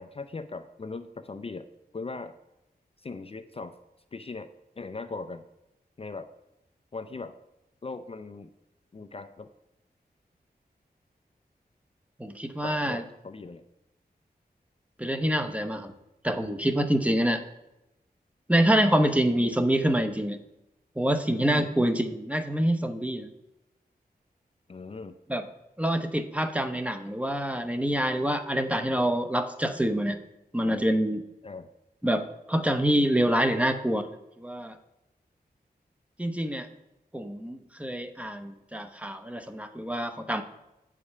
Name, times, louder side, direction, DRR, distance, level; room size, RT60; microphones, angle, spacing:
voice 1, 0.0-1.7 1.9-2.4 3.0-3.8 4.1-4.5 4.8-5.4 6.0-6.3 6.9-7.4 7.8-8.5 8.9-9.5 12.6-13.6 21.5-21.7 24.7-25.2 31.4-31.7, left 3 dB, 35° left, 8 dB, 0.4 m, -39 dB
voice 2, 12.2-13.0 15.0-15.9 16.2-17.4 18.5-20.4 21.0-23.3 25.3-25.5 25.8-30.2 30.5-31.2 32.0-34.1 34.4-34.8 36.2-36.7 37.1-40.4, right 1 dB, 10° right, 8 dB, 0.7 m, -26 dB
8.3 x 5.0 x 5.5 m, 0.92 s
wide cardioid pair, 105°, 17 cm